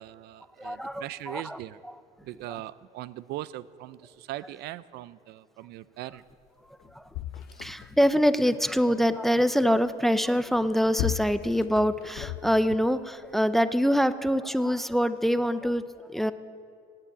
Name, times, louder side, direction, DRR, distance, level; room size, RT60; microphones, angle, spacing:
voice 1, 0.0-1.8 2.2-6.2 9.5-9.7, right 15 dB, 75° right, 17 dB, 0.4 m, -40 dB
voice 2, 0.6-2.0 2.5-2.6 6.9-7.0 7.6-16.3, equal, ahead, 13 dB, 0.5 m, -25 dB
sound 1, 6.5-6.6 6.8-8.2 10.4-12.9 13.6-13.7, left 14 dB, 75° left, 0.4 m, -36 dB
17.5 x 7.6 x 8.4 m, 2.4 s
cardioid pair, 105°, 17 cm